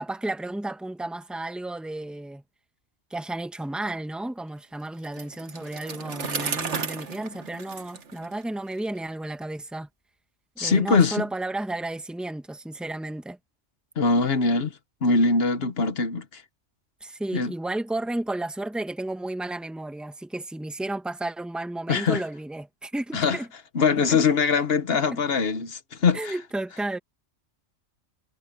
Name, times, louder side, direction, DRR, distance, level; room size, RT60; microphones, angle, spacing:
voice 1, 0.0-2.4 3.1-9.9 10.6-13.4 17.0-23.5 24.1-24.2 25.1-25.2 26.1-27.0, right 2 dB, ahead, 1.3 m, -32 dB
Bicycle, 5.0-8.9, right 5 dB, 65° right, 1.8 m, -34 dB
voice 2, 10.6-11.2 14.0-14.7 15.0-16.4 17.3-17.5 21.9-22.2 23.1-23.4 23.7-26.3, left 4 dB, 55° left, 1.3 m, -22 dB
omnidirectional pair, 1.3 m